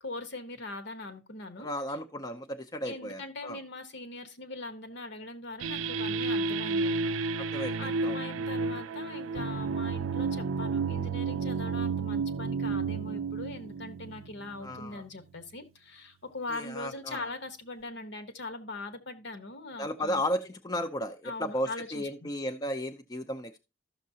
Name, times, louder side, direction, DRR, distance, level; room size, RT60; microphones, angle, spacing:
voice 1, 0.0-1.7 2.8-7.1 7.8-20.2 21.2-22.3, left 2 dB, 60° left, 1.1 m, -41 dB
voice 2, 1.6-3.6 7.4-8.2 14.6-15.0 16.5-17.2 19.8-23.6, equal, 20° left, 0.5 m, -34 dB
sound 1, 5.6-15.0, right 4 dB, 80° right, 0.4 m, -31 dB
13.0 x 6.5 x 2.7 m
head